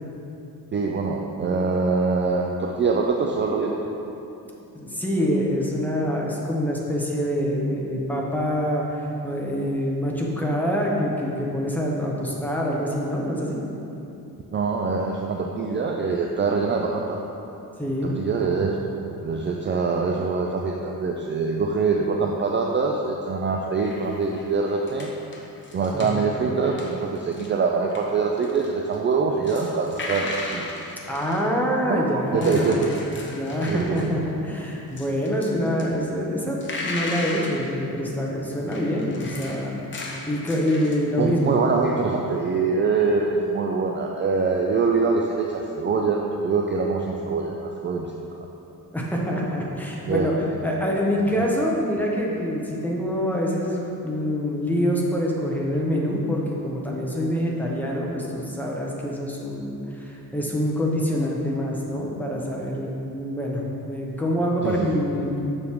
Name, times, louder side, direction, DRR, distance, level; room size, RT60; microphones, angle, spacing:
voice 1, 0.7-3.7 14.5-17.2 18.2-18.8 19.2-25.1 25.7-30.7 31.9-32.9 33.7-34.0 41.2-48.1 50.0-50.3 51.4-51.5 64.6-64.9, right 4 dB, 30° right, 1 dB, 0.4 m, -24 dB
voice 2, 4.7-13.6 17.8-18.1 25.9-26.1 31.1-32.8 33.3-39.8 40.3-41.5 48.9-50.3 50.6-65.4, equal, 5° left, -3 dB, 0.9 m, -25 dB
sound 1, 23.8-27.5 27.8-31.4 32.2-34.5 34.8-35.9 36.3-37.7 38.7-41.0, left 2 dB, 30° left, 0.9 m, -36 dB
6.8 x 6.3 x 3.6 m, 2.9 s
cardioid pair, 135°, 37 cm